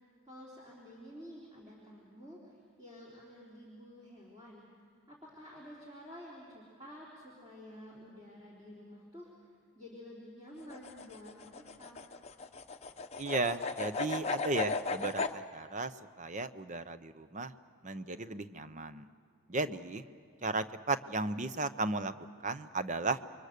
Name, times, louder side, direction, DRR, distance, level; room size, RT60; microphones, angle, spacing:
voice 1, 0.2-4.6 5.1-12.0, equal, 20° right, -5 dB, 3.5 m, -51 dB
sound 1, 10.6-15.4, left 4 dB, 30° left, 0.8 m, -36 dB
voice 2, 13.2-15.9 16.2-17.5 17.8-19.1 19.5-20.0 20.4-22.1 22.4-23.2, right 3 dB, 35° right, 12 dB, 0.7 m, -35 dB
29.0 x 23.5 x 6.7 m, 2.5 s
head